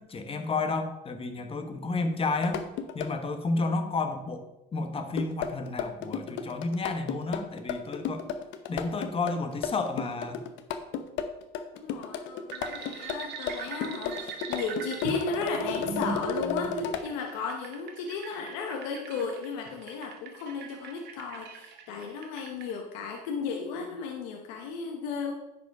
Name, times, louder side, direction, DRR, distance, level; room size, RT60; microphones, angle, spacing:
voice 1, 0.0-2.6 2.9-8.3 8.7-10.4, left 3 dB, 25° left, 7 dB, 1.2 m, -31 dB
sound 1, 2.4-3.1 5.1-17.1, left 7 dB, 60° left, 0.9 m, -34 dB
voice 2, 11.7-25.3, left 5 dB, 90° left, 2 dB, 1.1 m, -35 dB
sound 2, 12.5-22.7, right 4 dB, 55° right, 1.4 m, -40 dB
10.0 x 5.1 x 4.7 m, 0.98 s
supercardioid pair, 115°, 21 cm